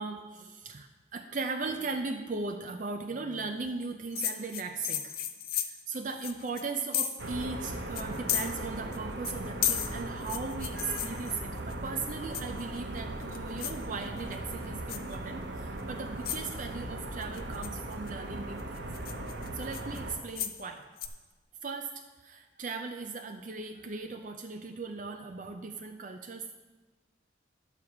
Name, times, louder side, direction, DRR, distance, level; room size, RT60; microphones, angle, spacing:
voice 1, 0.0-5.2 5.6-18.8 19.5-20.9 21.6-26.6, right 4 dB, 40° right, 4 dB, 0.5 m, -38 dB
sound 1, 4.1-7.3 7.6-7.7 7.9-9.0 9.2-11.7 12.3-12.8 13.2-13.8 14.2-14.5 14.9-15.1 15.8-15.9 16.2-16.5 17.2-18.1 18.6-20.6 21.0-21.1, left 10 dB, 50° left, 0.6 m, -34 dB
sound 2, 7.2-20.2, right 1 dB, 65° right, 1.1 m, -38 dB
11.0 x 4.9 x 7.1 m, 1.2 s
head